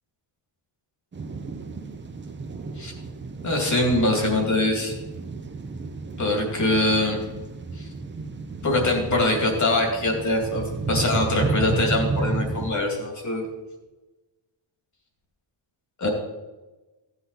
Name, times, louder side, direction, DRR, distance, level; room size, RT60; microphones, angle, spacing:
sound 1, 1.1-12.7, right 3 dB, 25° right, 0.7 m, -32 dB
voice 1, 3.4-4.9 6.2-7.2 7.8-7.9 8.6-13.4 16.0-16.1, left 2 dB, 40° left, 2 dB, 2.5 m, -23 dB
15.5 x 8.1 x 4.1 m, 1.1 s
wide cardioid pair, 160°, 46 cm